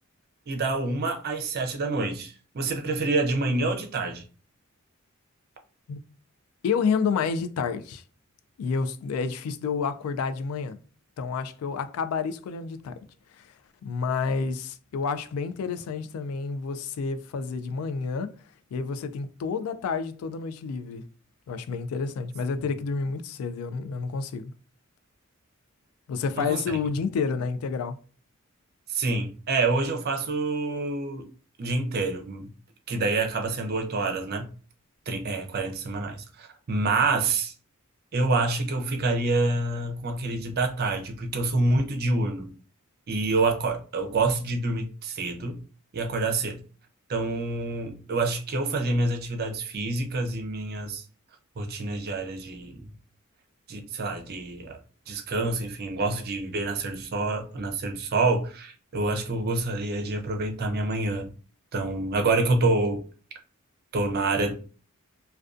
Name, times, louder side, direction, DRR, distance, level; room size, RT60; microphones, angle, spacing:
voice 1, 0.5-4.2 26.4-26.6 28.9-31.3 31.6-32.5 32.9-34.5 35.1-37.5 38.1-42.5 43.1-45.6 45.9-46.6 47.1-51.0 51.6-52.9 53.7-54.8 55.1-61.3 61.7-63.0 63.9-64.5, right 3 dB, 50° right, 0.5 m, -27 dB
voice 2, 6.6-8.0 8.6-10.8 11.2-13.0 13.3-13.5 13.8-18.3 18.7-21.0 21.5-24.5 26.1-28.0, left 5 dB, 90° left, 0.3 m, -29 dB
2.5 x 2.2 x 2.3 m
head